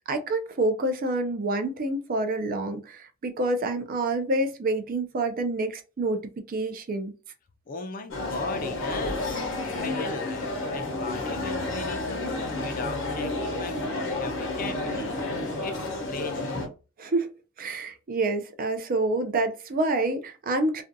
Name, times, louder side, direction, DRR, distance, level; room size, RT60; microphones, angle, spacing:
voice 1, 0.1-6.2 6.5-7.1 17.0-17.3 17.6-20.8, right 2 dB, 45° right, 0.4 m, -27 dB
voice 2, 7.7-9.4 9.7-16.6, left 3 dB, 40° left, 0.5 m, -37 dB
sound 1, 8.1-16.7, left 2 dB, 60° left, 0.8 m, -31 dB
2.5 x 2.2 x 2.6 m
head